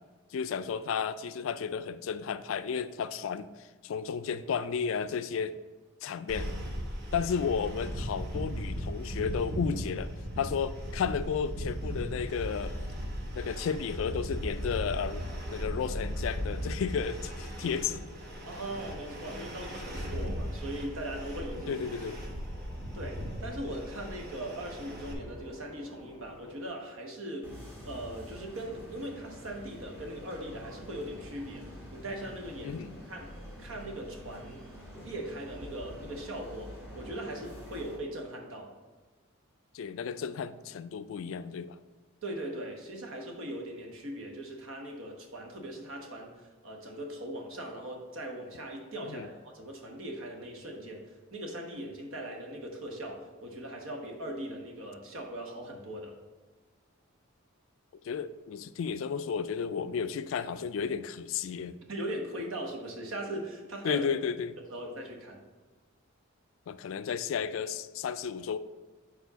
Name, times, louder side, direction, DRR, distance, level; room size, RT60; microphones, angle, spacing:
voice 1, 0.3-3.5 3.8-5.6 6.0-6.5 7.1-10.1 10.4-12.7 13.3-15.2 15.5-18.1 21.7-22.2 32.6-32.9 39.7-41.8 49.1-49.3 58.0-61.8 63.8-64.5 66.7-68.6, left 6 dB, 65° left, 13 dB, 0.3 m, -33 dB
sound 1, 6.3-25.1, equal, 50° right, 1.0 m, -37 dB
sound 2, 13.8-26.7, left 1 dB, 20° left, 0.8 m, -53 dB
voice 2, 18.5-21.8 22.9-27.5 27.8-32.8 33.1-34.7 35.0-38.7 42.2-56.1 61.9-64.0 64.7-65.4, right 1 dB, 70° right, 1 dB, 1.1 m, -40 dB
sound 3, 27.4-38.0, equal, 10° right, 1.8 m, -47 dB
4.7 x 4.2 x 5.7 m, 1.3 s
head